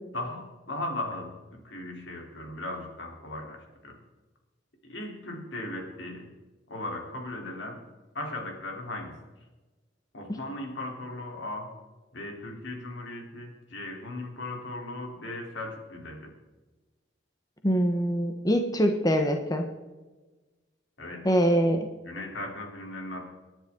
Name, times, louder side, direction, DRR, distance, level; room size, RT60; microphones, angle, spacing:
voice 1, 0.1-4.0 4.8-6.3 6.7-7.8 8.1-9.2 10.1-11.7 12.1-16.3 21.0-21.3 22.1-23.3, left 1 dB, 80° left, 1 dB, 3.6 m, -37 dB
voice 2, 17.6-19.7 21.2-21.9, equal, 20° left, 4 dB, 1.1 m, -24 dB
28.0 x 10.5 x 3.8 m, 1.2 s
head